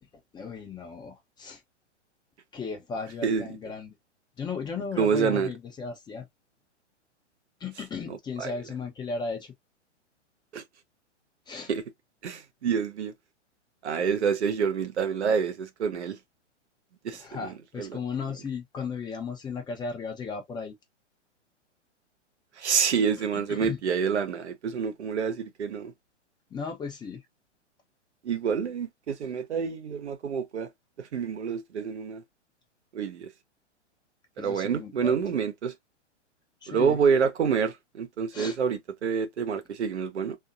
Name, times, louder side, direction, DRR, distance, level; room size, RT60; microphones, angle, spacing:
voice 1, 0.3-1.6 2.5-3.9 4.4-6.3 7.6-9.5 11.5-11.7 17.1-20.7 23.2-23.8 26.5-27.2 34.4-35.2 36.6-37.0 38.3-38.6, left 5 dB, 10° left, 0.7 m, -35 dB
voice 2, 5.0-5.5 8.1-8.5 10.5-10.6 11.7-11.8 12.2-13.1 13.8-16.2 17.0-17.9 22.6-25.9 28.2-30.7 31.0-32.2 32.9-33.3 34.4-35.7 36.7-40.4, right 6 dB, 65° right, 0.9 m, -27 dB
3.5 x 2.6 x 2.6 m
figure-of-eight pair, 110°, 36 cm